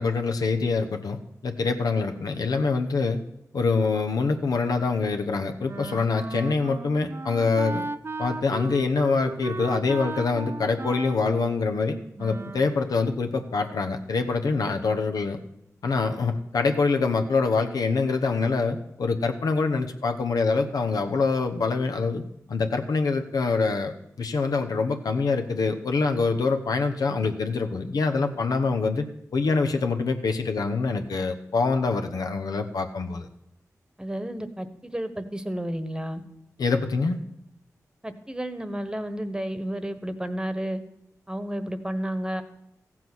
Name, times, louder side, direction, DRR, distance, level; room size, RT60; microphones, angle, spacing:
voice 1, 0.0-3.2 3.5-7.9 8.2-15.4 15.8-22.2 22.5-29.0 29.3-33.3 36.6-37.2, left 4 dB, 80° left, 6 dB, 1.0 m, -25 dB
Wind instrument woodwind instrument, 5.7-12.7, right 3 dB, 40° right, 0.5 m, -36 dB
voice 2, 34.0-36.2 38.0-40.8 41.3-42.4, right 1 dB, 10° right, 10 dB, 1.2 m, -31 dB
14.5 x 7.7 x 6.2 m, 0.79 s
cardioid pair, 50°, 6 cm